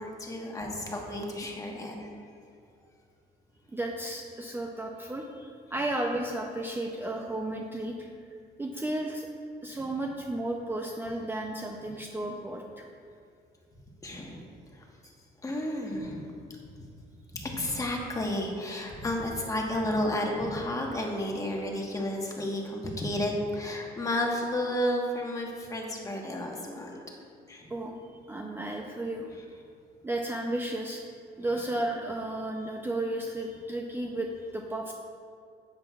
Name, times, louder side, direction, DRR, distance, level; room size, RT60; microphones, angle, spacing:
voice 1, 0.0-2.1 14.0-14.4 15.4-16.3 17.3-27.0 27.5-27.7, left 1 dB, 20° left, 0 dB, 1.3 m, -32 dB
voice 2, 3.7-8.1 8.6-9.3 9.6-12.8 27.7-29.3 30.0-31.0 31.4-34.9, right 1 dB, 15° right, 1 dB, 0.5 m, -33 dB
10.0 x 7.7 x 2.4 m, 2.4 s
cardioid pair, 110°, 17 cm